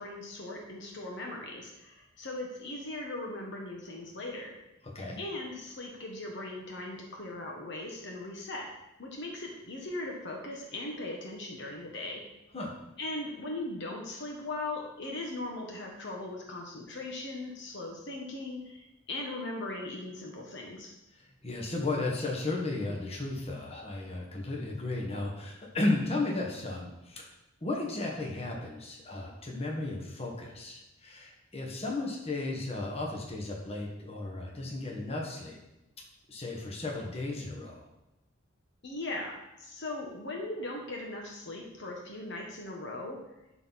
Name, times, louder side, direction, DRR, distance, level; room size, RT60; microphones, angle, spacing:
voice 1, 0.0-4.5 5.2-8.7 9.0-12.2 13.0-20.9 38.8-43.2, left 2 dB, 60° left, 0 dB, 1.2 m, -39 dB
voice 2, 4.8-5.2 12.5-12.7 21.4-27.3 27.6-35.6 36.3-37.8, left 2 dB, 30° left, -1 dB, 1.4 m, -34 dB
12.0 x 4.1 x 4.1 m, 0.94 s
head